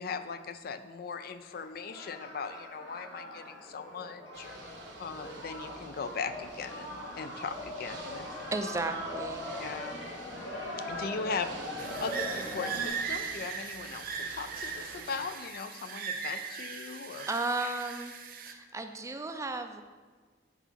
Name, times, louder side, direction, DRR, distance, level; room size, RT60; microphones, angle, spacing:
voice 1, 0.0-4.6 5.0-8.5 9.6-10.0 10.9-17.3, left 5 dB, 55° left, 10 dB, 0.4 m, -39 dB
sound 1, 1.5-12.9, left 1 dB, 90° left, 2.4 m, -41 dB
Ocean / Boat Water vehicle, 4.3-15.3, right 3 dB, 75° right, 1.2 m, -49 dB
voice 2, 8.5-9.5 17.3-18.2 18.5-19.8, right 2 dB, 15° right, 7 dB, 0.4 m, -34 dB
sound 2, 11.8-18.5, right 6 dB, 55° right, 0.7 m, -38 dB
8.2 x 4.0 x 5.8 m, 1.5 s
head